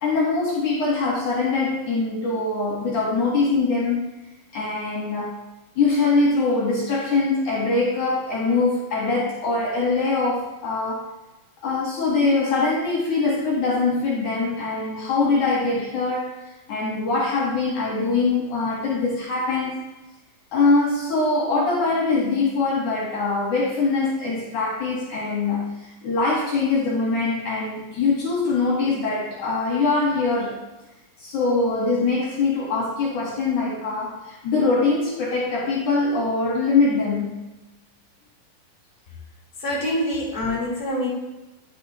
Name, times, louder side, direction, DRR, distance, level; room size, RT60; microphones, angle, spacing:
voice 1, 0.0-4.0 4.5-5.4 5.8-11.1 11.6-16.3 16.7-19.8 20.5-30.6 31.2-37.4, left 3 dB, 60° left, -5 dB, 3.1 m, -23 dB
voice 2, 39.6-41.1, left 1 dB, 25° left, -6 dB, 3.0 m, -25 dB
10.0 x 6.7 x 3.2 m, 1.0 s
omnidirectional pair, 4.1 m